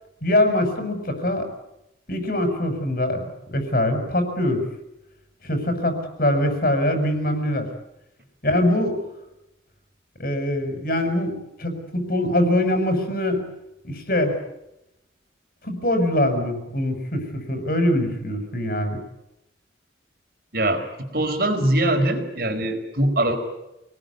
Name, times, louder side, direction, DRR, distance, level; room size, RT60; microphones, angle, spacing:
voice 1, 0.2-1.5 2.1-4.6 5.4-7.7 8.4-9.0 10.2-13.5 13.8-14.4 15.6-19.0, left 1 dB, 50° left, 7 dB, 6.3 m, -23 dB
voice 2, 20.5-20.8 21.1-23.4, right 1 dB, 50° right, 6 dB, 4.7 m, -22 dB
28.0 x 20.0 x 9.7 m, 0.89 s
head